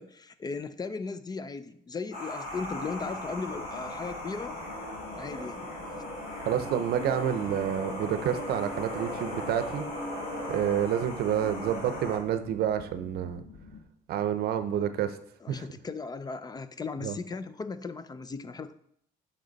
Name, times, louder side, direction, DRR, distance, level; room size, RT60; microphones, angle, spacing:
voice 1, 0.0-4.6 5.1-5.7 15.4-18.7, left 4 dB, 25° left, 13 dB, 0.4 m, -37 dB
sound 1, 2.1-12.2, left 1 dB, 60° left, 2.9 m, -37 dB
sound 2, 2.4-13.8, left 5 dB, 80° left, 1.6 m, -49 dB
voice 2, 6.5-9.8 10.5-13.4 14.1-15.2 15.5-15.6 17.0-17.2, right 10 dB, 70° right, 11 dB, 0.7 m, -28 dB
7.7 x 5.6 x 4.0 m, 0.69 s
cardioid pair, 110°, 17 cm